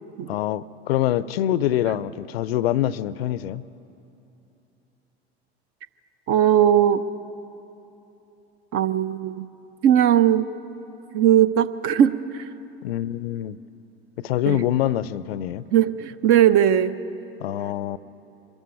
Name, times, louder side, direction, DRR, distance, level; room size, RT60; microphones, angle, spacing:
voice 1, 0.3-3.6 12.8-13.6 14.2-15.6 17.4-18.0, left 12 dB, 65° left, 19 dB, 0.6 m, -25 dB
voice 2, 6.3-7.0 8.7-9.5 9.8-10.4 11.1-12.4 14.5-14.6 15.7-16.9, right 10 dB, 45° right, 13 dB, 0.8 m, -18 dB
23.5 x 13.5 x 9.7 m, 2.9 s
figure-of-eight pair, 70°, 32 cm